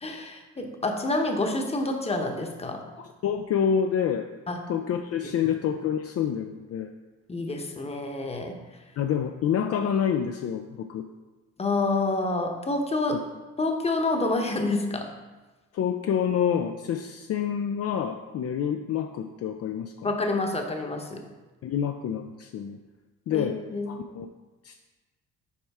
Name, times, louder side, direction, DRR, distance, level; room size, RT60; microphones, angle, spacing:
voice 1, 0.0-2.8 4.5-4.6 7.3-8.5 11.6-13.2 13.6-15.1 20.0-21.2 23.3-23.9, left 2 dB, 20° left, 3 dB, 0.9 m, -28 dB
voice 2, 3.0-4.3 4.7-6.9 9.0-11.0 13.1-13.2 15.7-20.1 21.6-22.8 23.3-23.6 23.9-24.3 24.6-24.8, left 8 dB, 55° left, 5 dB, 0.4 m, -27 dB
7.2 x 4.5 x 3.5 m, 1.2 s
cardioid pair, 90°, 30 cm